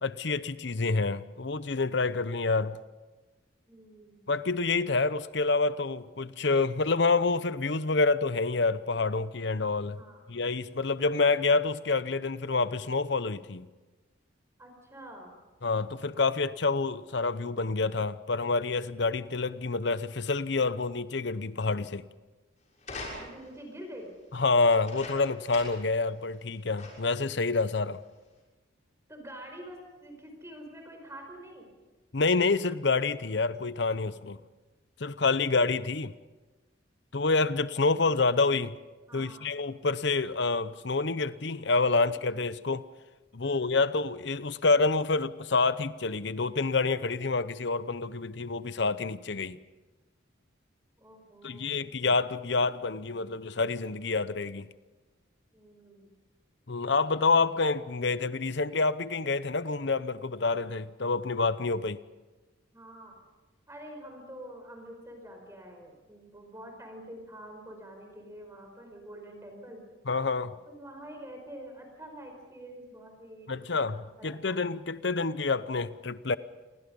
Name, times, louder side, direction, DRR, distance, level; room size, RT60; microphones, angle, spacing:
voice 1, 0.0-2.8 4.3-10.0 10.3-13.7 15.6-22.0 24.3-28.0 32.1-34.4 35.0-36.1 37.1-38.8 39.1-42.8 43.3-49.6 51.4-54.7 56.7-62.0 70.1-70.5 73.5-76.4, left 3 dB, 60° left, 0.8 m, -27 dB
voice 2, 3.7-4.2 9.9-10.5 14.6-15.4 23.1-24.1 29.1-31.7 39.1-39.6 42.0-42.3 43.4-43.9 51.0-51.8 55.5-56.1 62.7-63.1 63.7-69.8 70.6-74.6, right 1 dB, 15° right, 4.8 m, -47 dB
sound 1, 22.8-23.6 24.7-25.9 26.3-26.4 26.8-27.2 28.0-28.1, left 2 dB, 40° left, 6.5 m, -43 dB
29.0 x 23.5 x 5.4 m
head